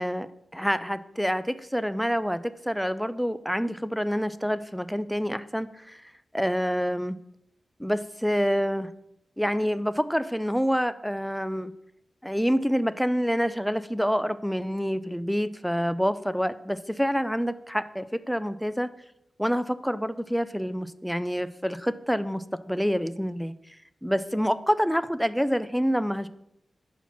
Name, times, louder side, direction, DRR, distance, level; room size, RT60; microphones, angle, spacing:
voice 1, 0.0-7.2 7.8-8.9 9.4-11.7 12.2-18.9 19.4-23.5 24.0-26.3, equal, ahead, 14 dB, 0.4 m, -27 dB
10.5 x 4.3 x 5.8 m, 0.81 s
wide cardioid pair, 110°, 0 cm